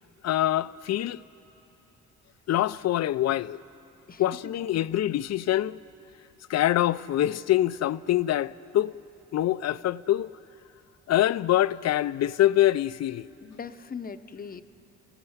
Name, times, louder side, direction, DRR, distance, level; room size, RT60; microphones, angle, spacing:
voice 1, 0.2-1.2 2.5-3.6 4.2-5.8 6.5-8.9 9.3-10.3 11.1-13.3, left 13 dB, 60° left, 0.5 m, -25 dB
voice 2, 4.1-4.9 13.4-14.6, left 6 dB, 30° left, 0.8 m, -40 dB
28.5 x 16.5 x 8.0 m
cardioid pair, 90°, 30 cm